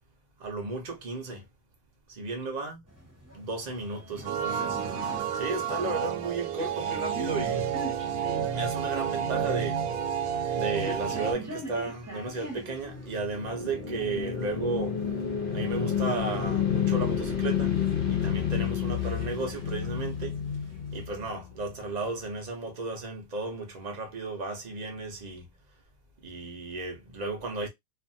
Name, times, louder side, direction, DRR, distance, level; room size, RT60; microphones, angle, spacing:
voice 1, 0.4-1.5 2.1-2.8 3.3-7.7 8.5-9.9 10.5-15.0 15.5-17.8 18.1-20.4 20.9-25.5 26.2-27.7, right 3 dB, 50° right, 0.5 m, -34 dB
sound 1, 2.9-21.3, right 1 dB, 15° right, 0.7 m, -46 dB
sound 2, 4.2-11.3, right 8 dB, 75° right, 1.0 m, -30 dB
sound 3, 12.4-21.7, left 8 dB, 55° left, 0.6 m, -30 dB
2.5 x 2.5 x 2.6 m
omnidirectional pair, 1.7 m